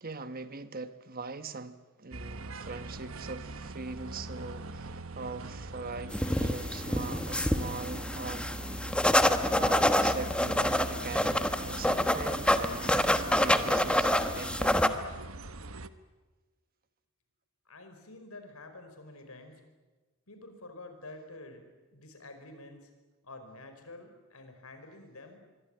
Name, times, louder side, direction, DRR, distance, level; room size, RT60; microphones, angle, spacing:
voice 1, 0.0-8.6 9.6-15.0, right 3 dB, 45° right, 1.3 m, -41 dB
sound 1, 2.1-15.9, right 2 dB, 70° right, 1.2 m, -42 dB
sound 2, 6.1-14.9, left 1 dB, 5° left, 1.2 m, -27 dB
voice 2, 17.6-19.6 20.3-21.6 21.9-22.9 23.2-25.4, left 2 dB, 90° left, 5.1 m, -48 dB
25.5 x 23.5 x 9.0 m
head